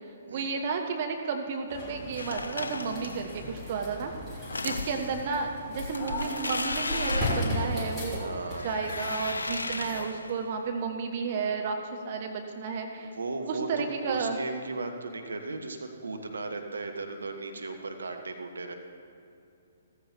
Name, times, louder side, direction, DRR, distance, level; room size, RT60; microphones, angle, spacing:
voice 1, 0.3-4.1 4.6-8.2 8.6-11.8 12.0-13.1 13.5-14.4, right 5 dB, 40° right, 3 dB, 1.0 m, -32 dB
sound 1, 1.7-10.0, left 1 dB, 10° left, 3.1 m, -37 dB
sound 2, 2.2-3.3 4.4-5.3 5.8-8.2 8.5-10.4, left 2 dB, 70° left, 0.6 m, -35 dB
voice 2, 4.6-4.9 8.1-8.7 13.0-18.7, right 3 dB, 70° right, 4 dB, 1.1 m, -36 dB
15.5 x 14.5 x 2.7 m, 2.6 s
figure-of-eight pair, 125°, 0 cm